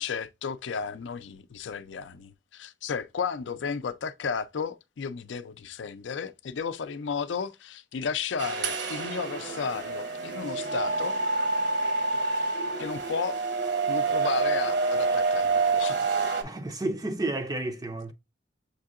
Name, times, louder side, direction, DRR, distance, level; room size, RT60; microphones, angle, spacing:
voice 1, 0.0-11.2 12.8-13.4 13.9-16.1, left 6 dB, 70° left, 0.5 m, -33 dB
sound 1, 8.4-16.4, right 4 dB, 65° right, 1.0 m, -27 dB
voice 2, 16.4-18.1, right 2 dB, 20° right, 0.4 m, -31 dB
6.6 x 2.7 x 2.4 m
head